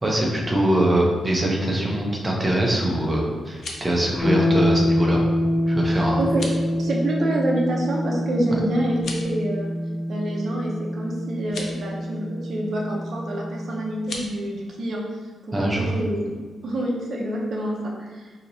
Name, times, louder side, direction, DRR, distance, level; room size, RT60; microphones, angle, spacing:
voice 1, 0.0-5.2 5.7-6.2 15.5-15.9, right 1 dB, 15° right, -2 dB, 0.7 m, -23 dB
sound 1, 3.4-4.0 6.3-6.7 8.9-9.4 11.4-11.7 14.0-14.3, left 3 dB, 55° left, 0.5 m, -36 dB
sound 2, 4.2-14.0, left 1 dB, 10° left, 1.3 m, -25 dB
voice 2, 5.9-9.7 10.1-15.0 15.5-18.3, right 1 dB, 55° right, -2 dB, 0.6 m, -27 dB
4.5 x 2.8 x 2.7 m, 1.4 s
wide cardioid pair, 160°, 0 cm